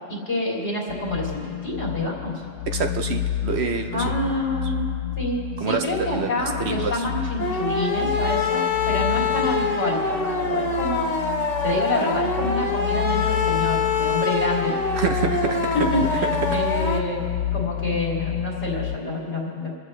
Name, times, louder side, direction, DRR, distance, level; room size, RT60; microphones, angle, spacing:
voice 1, 0.1-2.4 3.9-4.8 5.2-11.1 11.6-14.8 15.4-15.6 15.9-17.2 17.5-19.7, left 1 dB, 70° left, -4 dB, 3.4 m, -27 dB
sound 1, 0.9-19.0, left 11 dB, 90° left, 1.0 m, -30 dB
voice 2, 2.7-4.2 5.6-7.1 15.0-16.6, right 5 dB, 65° right, 5 dB, 1.0 m, -27 dB
sound 2, 7.4-17.0, left 4 dB, 35° left, 1.1 m, -25 dB
26.0 x 14.5 x 3.2 m, 2.2 s
omnidirectional pair, 1.2 m